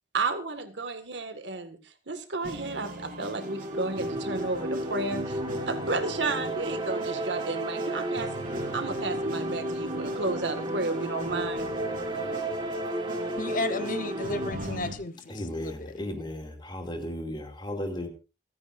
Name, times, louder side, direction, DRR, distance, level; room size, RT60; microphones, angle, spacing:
voice 1, 0.1-5.4 5.7-8.3 8.7-11.7, right 3 dB, 75° right, 1.8 m, -32 dB
sound 1, 2.4-15.0, right 1 dB, 50° right, 3.6 m, -41 dB
sound 2, 3.4-14.5, right 1 dB, 25° right, 1.8 m, -33 dB
voice 2, 13.4-15.1 15.5-15.9, left 2 dB, 50° left, 0.9 m, -33 dB
voice 3, 15.3-18.1, left 1 dB, 25° left, 2.5 m, -35 dB
29.0 x 9.7 x 2.6 m
head